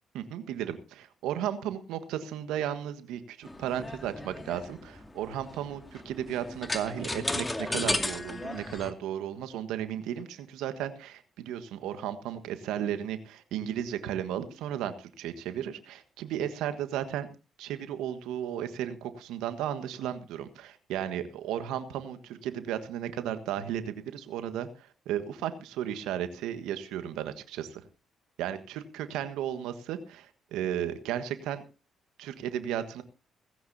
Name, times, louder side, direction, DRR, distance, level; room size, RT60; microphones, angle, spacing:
voice 1, 0.1-17.3 17.6-27.8 28.4-31.6 32.2-33.0, right 10 dB, 75° right, 9 dB, 1.5 m, -34 dB
sound 1, 3.4-8.9, left 2 dB, 20° left, 2.3 m, -34 dB
18.5 x 16.0 x 2.8 m, 0.32 s
hypercardioid pair, 50°, 0 cm